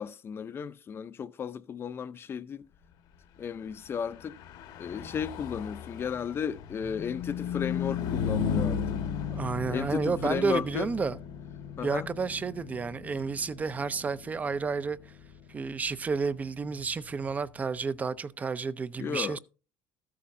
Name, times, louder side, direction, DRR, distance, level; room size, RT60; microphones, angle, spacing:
voice 1, 0.0-2.6 3.4-4.3 4.8-9.0 9.7-10.9 11.8-12.1 19.0-19.4, left 7 dB, 30° left, 0.6 m, -34 dB
Car passing by / Truck, 4.0-17.7, left 7 dB, 80° left, 1.5 m, -36 dB
voice 2, 9.3-11.2 11.8-15.1 15.5-19.4, right 5 dB, 20° right, 0.5 m, -31 dB
13.5 x 8.5 x 2.6 m
cardioid pair, 140°, 8 cm